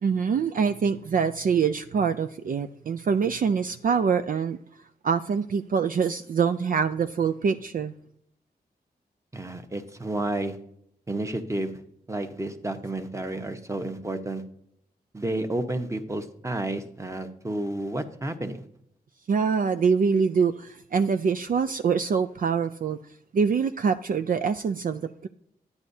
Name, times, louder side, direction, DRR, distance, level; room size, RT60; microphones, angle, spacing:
voice 1, 0.0-4.6 5.0-7.9 19.3-23.0 23.3-25.3, right 6 dB, 55° right, 0.4 m, -24 dB
voice 2, 9.3-10.6 11.1-11.7 12.1-14.4 15.1-18.6, right 1 dB, 15° right, 1.1 m, -31 dB
9.5 x 9.3 x 2.7 m
cardioid pair, 50°, 17 cm